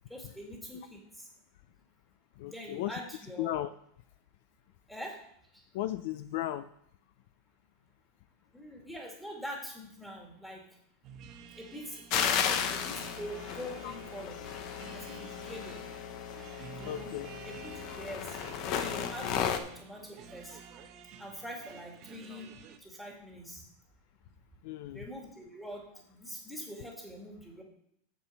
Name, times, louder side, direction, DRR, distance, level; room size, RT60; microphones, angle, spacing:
voice 1, 0.1-1.3 2.5-3.5 4.9-5.2 8.5-10.6 11.6-14.4 14.9-15.8 16.8-17.1 17.4-18.4 18.8-20.6 21.2-22.5 22.8-23.6 24.9-27.6, equal, 5° left, -1 dB, 2.3 m, -44 dB
voice 2, 2.4-2.9 3.4-3.7 5.7-6.6 13.8-13.9 16.8-17.3 24.6-25.0, left 14 dB, 60° left, 13 dB, 0.4 m, -35 dB
sound 1, 11.0-22.8, right 7 dB, 40° right, 1.0 m, -51 dB
sound 2, 12.1-19.6, left 8 dB, 45° left, 0.9 m, -34 dB
7.6 x 7.0 x 5.7 m, 0.73 s
supercardioid pair, 150°, 0 cm